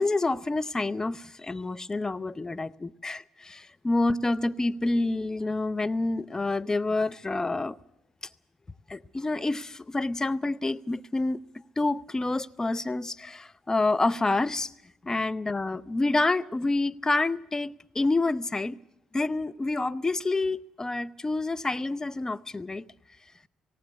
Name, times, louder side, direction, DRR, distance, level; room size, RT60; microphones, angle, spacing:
voice 1, 0.0-7.8 8.9-11.4 11.8-14.7 15.0-18.8 19.1-22.8, left 2 dB, 20° left, 0.7 m, -28 dB
18.0 x 18.0 x 8.3 m
hypercardioid pair, 50°, 3 cm